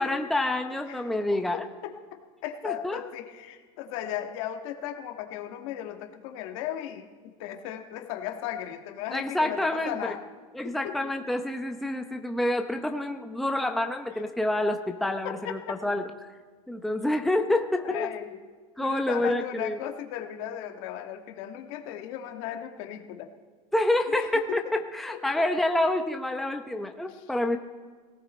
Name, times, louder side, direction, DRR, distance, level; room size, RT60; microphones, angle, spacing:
voice 1, 0.0-1.6 2.6-3.0 9.1-10.1 10.5-16.0 16.7-18.1 18.8-19.8 23.7-27.6, left 1 dB, ahead, 5 dB, 0.8 m, -28 dB
voice 2, 0.9-10.2 10.6-11.0 14.2-14.6 15.2-16.0 17.8-18.4 18.8-23.3 24.1-24.8 25.1-25.5 27.1-27.3, left 11 dB, 65° left, 5 dB, 1.6 m, -37 dB
17.5 x 16.5 x 4.3 m, 1.5 s
supercardioid pair, 120°, 18 cm